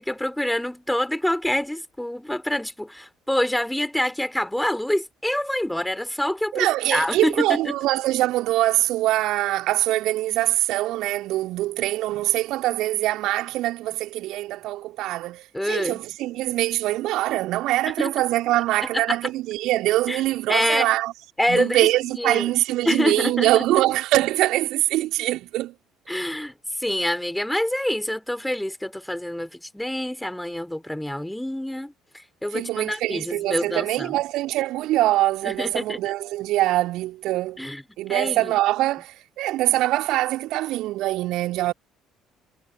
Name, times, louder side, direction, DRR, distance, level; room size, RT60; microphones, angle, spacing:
voice 1, 0.0-7.8 15.5-16.0 17.9-18.1 18.9-19.2 20.1-20.2 20.5-20.9 21.4-21.9 22.2-22.5 22.8-23.7 26.1-34.2 35.4-36.0 37.6-37.8 38.1-38.5, left 1 dB, 5° left, 4.2 m, -26 dB
voice 2, 6.5-21.1 21.5-25.7 32.5-37.6 38.0-41.7, right 16 dB, 55° right, 2.1 m, -23 dB
figure-of-eight pair, 55°, 0 cm